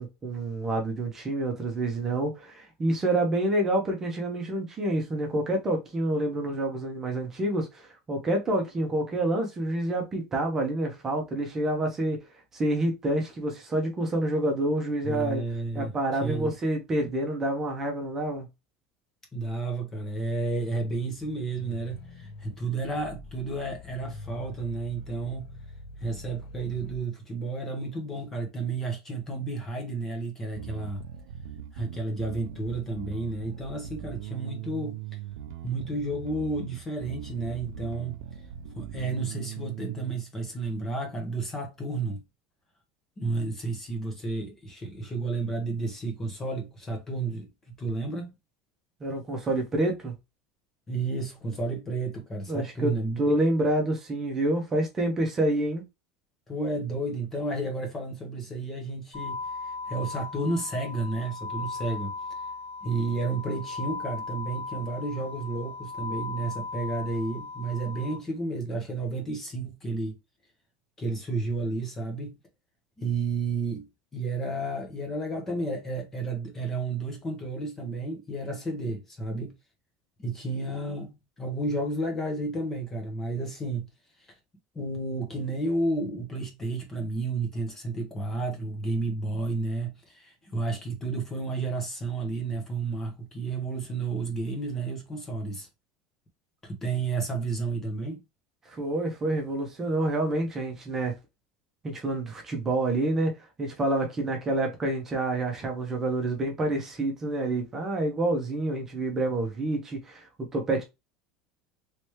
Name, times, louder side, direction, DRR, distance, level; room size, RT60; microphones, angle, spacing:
voice 1, 0.0-12.2 12.5-15.4 15.7-18.5 49.0-50.1 52.5-55.8 98.7-101.1 101.8-103.3 103.6-110.8, right 1 dB, 15° right, 0.9 m, -28 dB
voice 2, 15.0-15.9 16.2-16.5 19.3-25.5 26.0-31.0 31.7-35.0 35.6-38.2 38.8-42.2 43.2-47.5 47.8-48.3 50.9-53.3 56.5-59.4 59.6-62.1 62.8-70.2 71.0-72.4 73.0-73.9 74.1-79.5 80.2-83.9 84.7-95.7 96.6-98.2, right 3 dB, 15° left, 0.9 m, -31 dB
sound 1, 21.0-27.0, left 1 dB, 50° left, 1.0 m, -45 dB
Bass guitar, 30.6-40.1, right 11 dB, 85° right, 0.4 m, -40 dB
sound 2, 59.1-68.2, left 4 dB, 35° left, 1.7 m, -37 dB
3.2 x 3.0 x 3.0 m
cardioid pair, 165°, 2 cm